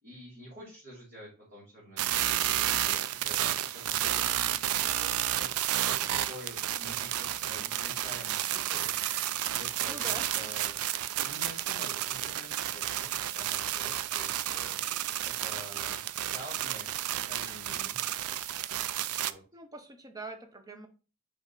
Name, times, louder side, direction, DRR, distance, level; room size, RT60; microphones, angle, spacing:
voice 1, 0.0-10.7 11.2-14.8 15.2-16.0 16.3-16.9 17.2-18.1 19.0-19.4, equal, 45° right, -8 dB, 2.9 m, -48 dB
sound 1, 2.0-19.3, right 12 dB, 80° right, 0.4 m, -31 dB
voice 2, 9.9-10.4 19.1-20.9, right 2 dB, 15° right, 7 dB, 0.8 m, -44 dB
5.1 x 5.0 x 4.0 m, 0.33 s
head